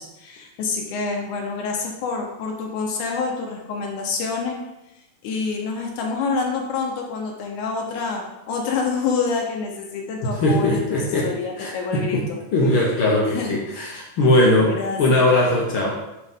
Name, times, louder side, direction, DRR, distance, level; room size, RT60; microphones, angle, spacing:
voice 1, 0.0-4.6 5.2-12.4 13.3-13.6 14.3-15.3, left 4 dB, 85° left, 1 dB, 2.4 m, -27 dB
voice 2, 10.4-11.3 11.6-12.3 12.5-16.0, left 1 dB, 65° left, -2 dB, 1.3 m, -20 dB
9.5 x 3.8 x 3.6 m, 0.93 s
omnidirectional pair, 3.4 m